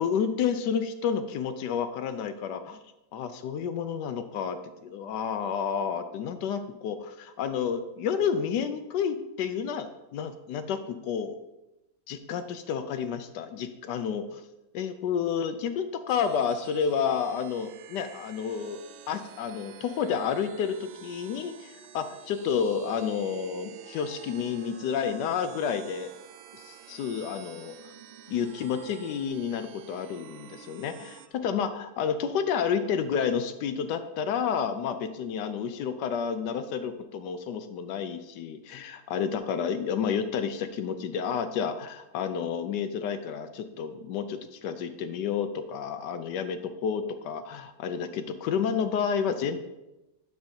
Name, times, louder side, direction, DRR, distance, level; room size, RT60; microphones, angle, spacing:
voice 1, 0.0-2.8 3.1-11.4 12.1-14.2 14.7-18.8 19.1-26.1 26.5-27.8 28.3-49.7, left 7 dB, 75° left, 10 dB, 1.0 m, -30 dB
sound 1, 16.1-31.3, right 8 dB, 85° right, 1.4 m, -49 dB
9.5 x 7.0 x 2.8 m, 0.97 s
omnidirectional pair, 2.1 m